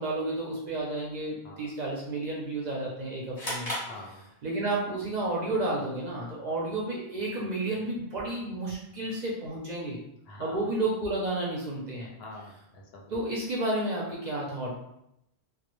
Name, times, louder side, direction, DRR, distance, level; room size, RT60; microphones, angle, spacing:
voice 1, 0.0-3.7 4.4-10.0 10.4-12.1 13.1-14.7, right 2 dB, 50° right, -3 dB, 0.6 m, -31 dB
sound 1, 3.4-4.8, left 1 dB, 25° left, 0.8 m, -36 dB
voice 2, 3.8-4.3 10.3-10.6 12.2-13.1, left 2 dB, 75° left, 0 dB, 0.8 m, -45 dB
2.2 x 2.1 x 2.9 m, 0.80 s
omnidirectional pair, 1.1 m